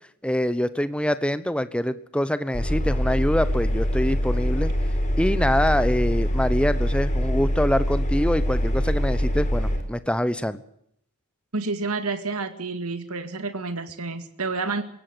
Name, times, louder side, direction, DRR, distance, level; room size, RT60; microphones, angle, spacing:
voice 1, 0.2-4.7 5.2-10.6, equal, 5° left, 13 dB, 0.9 m, -25 dB
Engine, 2.5-9.8, equal, 35° left, 4.2 m, -24 dB
voice 2, 11.5-14.8, right 3 dB, 75° right, 9 dB, 2.2 m, -29 dB
22.0 x 17.5 x 8.1 m, 0.73 s
head